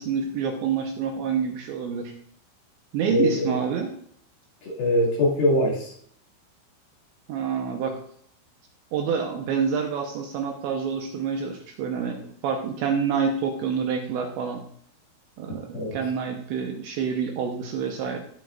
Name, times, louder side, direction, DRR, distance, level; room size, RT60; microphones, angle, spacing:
voice 1, 0.0-2.1 2.9-3.9 7.3-8.0 8.9-14.6 15.4-18.2, right 6 dB, 75° right, 3 dB, 2.9 m, -27 dB
voice 2, 3.1-3.6 4.6-5.9 15.7-16.0, left 1 dB, 55° left, -5 dB, 3.7 m, -22 dB
17.5 x 7.6 x 2.5 m, 0.63 s
omnidirectional pair, 5.9 m